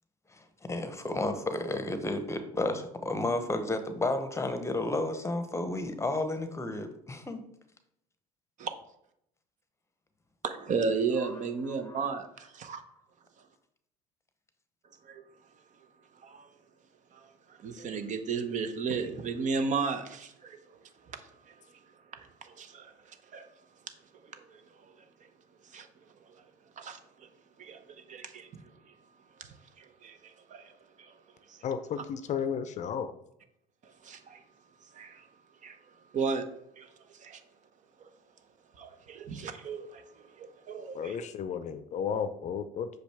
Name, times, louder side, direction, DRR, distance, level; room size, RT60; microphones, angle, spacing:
voice 1, 0.3-7.4 11.2-11.3 11.8-12.0, left 2 dB, 15° left, 0.9 m, -32 dB
voice 2, 10.4-12.8 15.0-15.2 16.2-16.5 17.1-21.6 22.1-23.5 24.2-25.3 25.6-26.4 26.8-27.3 27.6-29.0 29.4-31.1 31.5-31.7 33.8-34.4 34.9-35.3 35.6-35.8 36.1-36.5 36.8-37.4 38.0-38.1 38.8-41.2, right 5 dB, 45° right, 0.8 m, -36 dB
voice 3, 31.6-33.1 40.9-42.9, left 7 dB, 45° left, 0.5 m, -33 dB
6.1 x 5.1 x 3.4 m
hypercardioid pair, 75°, 17 cm